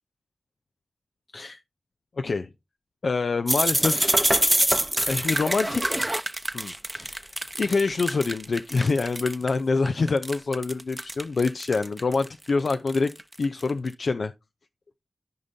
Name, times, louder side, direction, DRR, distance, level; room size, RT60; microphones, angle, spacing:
voice 1, 2.2-2.5 3.0-4.6 5.1-6.1 6.5-7.2 7.6-13.1 13.4-14.3, left 4 dB, 75° left, 0.4 m, -26 dB
sound 1, 3.5-9.5 9.9-13.7, right 1 dB, 15° right, 0.7 m, -25 dB
13.5 x 5.2 x 2.7 m
cardioid pair, 45°, 0 cm